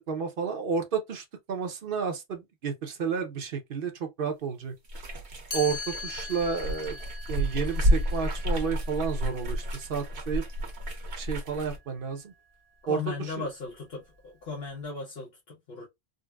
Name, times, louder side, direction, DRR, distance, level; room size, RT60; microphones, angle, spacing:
voice 1, 0.1-4.7 5.5-7.0 7.3-10.4 11.2-12.3 12.9-13.0 13.4-13.5, right 6 dB, 60° right, 0.8 m, -31 dB
sound 1, 4.8-11.8, equal, 75° right, 1.2 m, -30 dB
Chime, 5.5-11.4, left 3 dB, 20° left, 0.9 m, -42 dB
voice 2, 12.8-15.9, left 5 dB, 65° left, 1.1 m, -37 dB
3.8 x 2.1 x 2.2 m
omnidirectional pair, 1.1 m